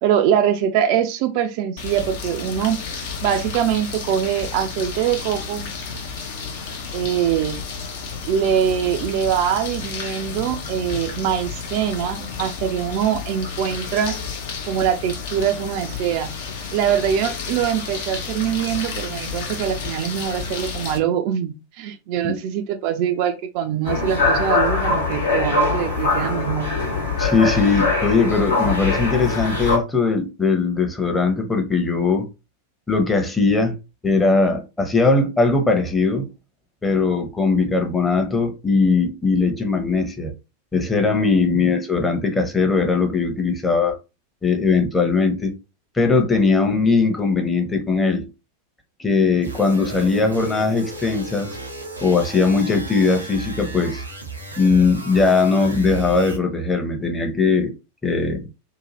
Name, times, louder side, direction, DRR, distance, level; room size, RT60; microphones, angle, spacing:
voice 1, 0.0-2.8 3.2-5.7 6.9-7.6 8.3-14.2 14.7-16.4 16.7-26.7 41.4-41.7, right 9 dB, 45° right, 0.4 m, -23 dB
sound 1, 1.8-21.0, left 5 dB, 55° left, 0.6 m, -32 dB
sound 2, 23.8-29.8, left 3 dB, 70° left, 1.1 m, -22 dB
voice 2, 27.2-32.3 32.9-33.7 34.0-36.3 36.8-40.3 40.7-44.0 44.4-45.5 45.9-48.3 49.0-51.6 52.0-54.1 54.6-57.7 58.0-58.5, left 4 dB, 10° left, 0.8 m, -19 dB
sound 3, 49.4-56.4, right 3 dB, 85° right, 0.7 m, -34 dB
2.8 x 2.2 x 3.0 m
figure-of-eight pair, 90°, 0 cm